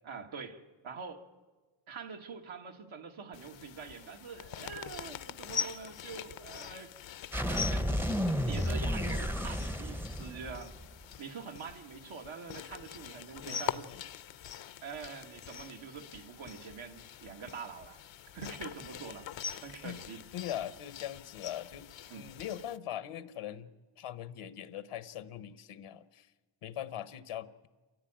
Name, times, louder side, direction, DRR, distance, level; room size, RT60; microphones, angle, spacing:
voice 1, 0.1-1.3 1.9-6.9 7.5-10.7 11.2-13.9 14.8-18.0 18.3-19.3 19.6-20.2 22.1-22.3, right 5 dB, 65° right, 2.0 m, -45 dB
sound 1, 3.3-22.8, left 8 dB, 60° left, 0.8 m, -43 dB
sound 2, 7.3-11.0, equal, 5° right, 0.8 m, -32 dB
voice 2, 13.4-14.0 19.7-20.0 20.3-26.3 26.6-27.7, left 11 dB, 80° left, 1.1 m, -41 dB
29.0 x 14.0 x 8.9 m
cardioid pair, 105°, 50 cm